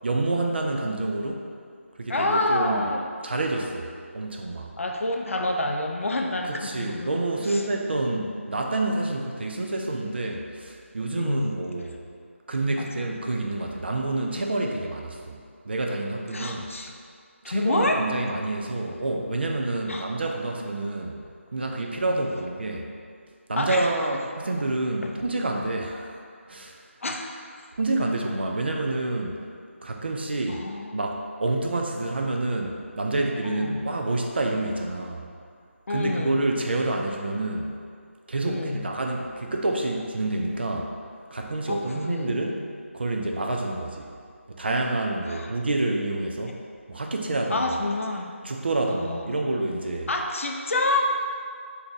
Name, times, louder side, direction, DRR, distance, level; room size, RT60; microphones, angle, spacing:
voice 1, 0.0-1.5 2.0-2.9 3.2-4.7 6.4-11.9 12.5-16.7 17.5-21.2 21.5-22.9 23.5-26.2 26.5-26.8 27.8-29.4 29.8-30.6 30.9-35.3 35.9-37.7 38.3-40.9 41.3-42.5 42.9-44.1 44.5-46.6 46.9-47.7 48.4-50.1, right 2 dB, 50° right, 1 dB, 0.3 m, -28 dB
voice 2, 2.1-3.0 4.8-7.6 11.1-11.5 12.8-13.1 16.3-16.9 17.4-18.1 19.9-20.1 22.0-22.3 23.5-23.9 25.0-25.1 27.0-27.3 30.5-31.0 33.4-33.9 35.9-36.5 38.4-38.9 41.7-42.6 45.3-45.5 47.5-48.4 48.9-49.4 50.1-51.0, left 2 dB, 70° left, 2 dB, 0.4 m, -28 dB
2.6 x 2.3 x 3.8 m, 2.2 s
figure-of-eight pair, 170°, 7 cm